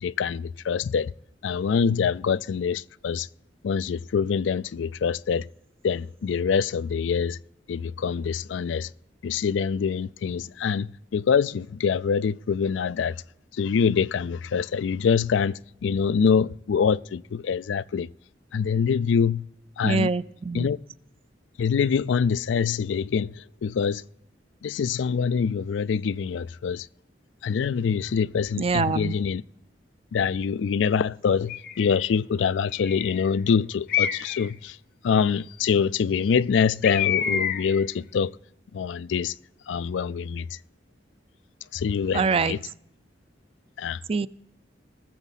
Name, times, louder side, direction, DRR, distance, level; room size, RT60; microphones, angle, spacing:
voice 1, 0.0-1.1 1.4-3.3 3.6-5.5 5.8-7.4 7.7-8.9 9.2-13.2 13.6-18.1 18.5-19.5 19.8-20.1 20.5-20.8 21.6-24.0 24.6-26.9 27.4-29.4 30.1-34.8 35.0-38.3 38.7-39.3 39.7-40.6 41.7-42.6 43.8-44.0, left 6 dB, 85° left, 0.4 m, -25 dB
voice 2, 19.8-20.7 28.6-29.1 42.1-42.6 44.1-44.3, right 4 dB, 30° right, 0.4 m, -24 dB
Bird, 31.5-31.9 32.7-33.3 33.9-34.5 36.8-37.8, left 9 dB, 55° left, 0.8 m, -27 dB
20.0 x 7.2 x 4.0 m
head